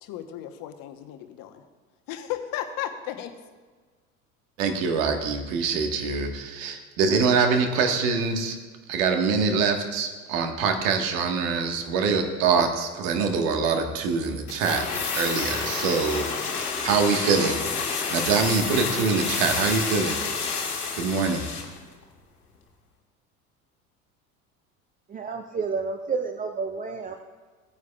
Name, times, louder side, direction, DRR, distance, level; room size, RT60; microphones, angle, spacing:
voice 1, 0.0-1.7 2.1-3.4, left 11 dB, 50° left, 8 dB, 1.1 m, -35 dB
voice 2, 4.6-8.6 8.9-14.8 15.1-16.3 16.6-17.6 18.1-20.2 20.9-21.5, right 5 dB, 60° right, 5 dB, 1.5 m, -24 dB
sound 1, 14.5-21.8 22.0-22.1, left 5 dB, 85° left, 1.4 m, -29 dB
voice 3, 25.1-27.1, right 4 dB, 20° right, 5 dB, 0.6 m, -30 dB
17.0 x 9.5 x 2.3 m, 1.5 s
figure-of-eight pair, 70°, 44 cm